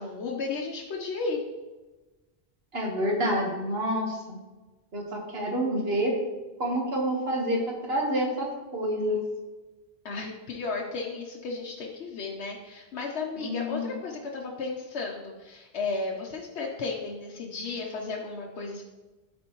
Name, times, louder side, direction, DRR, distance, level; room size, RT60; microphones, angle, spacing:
voice 1, 0.0-1.4 10.0-18.8, left 4 dB, 80° left, -2 dB, 1.0 m, -34 dB
voice 2, 2.7-4.4 4.9-6.2 6.6-9.2 13.4-14.0, equal, 65° right, 0 dB, 1.6 m, -28 dB
12.0 x 4.4 x 3.0 m, 1.2 s
omnidirectional pair, 1.1 m